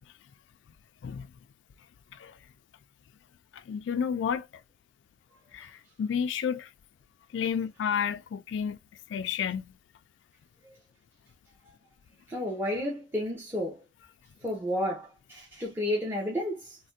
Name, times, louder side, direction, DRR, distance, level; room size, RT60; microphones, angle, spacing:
voice 1, 3.5-4.5 5.5-6.7 7.3-8.8 9.1-9.7, left 7 dB, 90° left, 0.3 m, -31 dB
voice 2, 12.3-13.8 14.4-16.8, left 1 dB, 10° right, 0.7 m, -31 dB
3.3 x 2.1 x 2.6 m
head